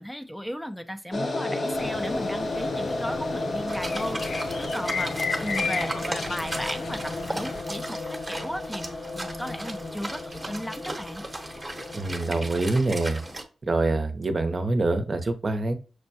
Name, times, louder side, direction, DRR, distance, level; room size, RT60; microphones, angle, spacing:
voice 1, 0.0-11.2, equal, 10° left, 7 dB, 0.5 m, -35 dB
sound 1, 1.1-13.4, left 2 dB, 50° left, 0.8 m, -33 dB
sound 2, 1.7-7.6, left 5 dB, 75° left, 0.4 m, -35 dB
sound 3, 3.7-13.4, right 2 dB, 20° right, 0.9 m, -37 dB
voice 2, 11.9-13.2 13.7-15.7, right 2 dB, 45° right, 7 dB, 0.7 m, -25 dB
6.1 x 2.2 x 2.7 m, 0.34 s
cardioid pair, 55°, 0 cm